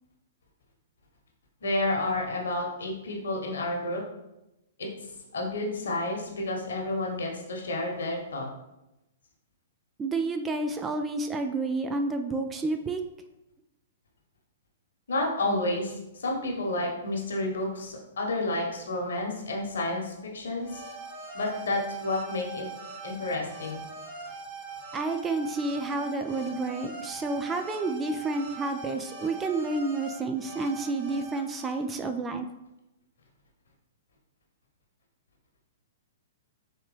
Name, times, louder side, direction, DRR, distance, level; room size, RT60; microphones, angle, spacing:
voice 1, 1.6-4.0 4.8-8.5 15.1-20.8 21.3-22.7 23.0-23.8, left 2 dB, 70° left, 0 dB, 1.2 m, -30 dB
voice 2, 10.0-13.0 24.9-32.5, right 3 dB, 15° right, 6 dB, 0.3 m, -30 dB
sound 1, 20.6-31.7, right 3 dB, 35° right, 1.2 m, -42 dB
4.3 x 3.3 x 3.3 m, 0.94 s
figure-of-eight pair, 115°, 0 cm